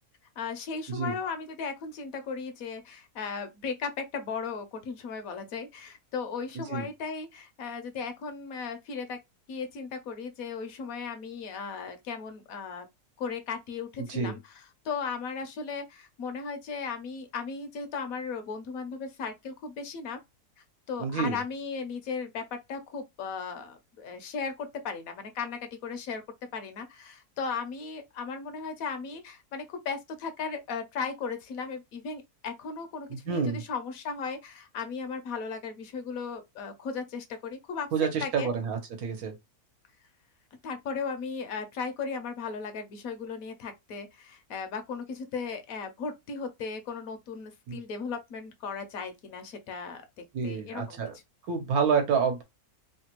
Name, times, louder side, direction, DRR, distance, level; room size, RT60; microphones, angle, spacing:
voice 1, 0.4-9.2 9.5-12.9 13.2-20.2 20.9-22.4 22.7-26.2 26.5-37.9 38.2-38.5 40.6-51.0, left 5 dB, 70° left, 1.0 m, -36 dB
voice 2, 21.0-21.4 33.3-33.6 37.9-39.3 47.7-47.8 50.3-51.1 51.5-52.4, right 6 dB, 75° right, 1.3 m, -28 dB
3.2 x 2.2 x 2.9 m
omnidirectional pair, 1.6 m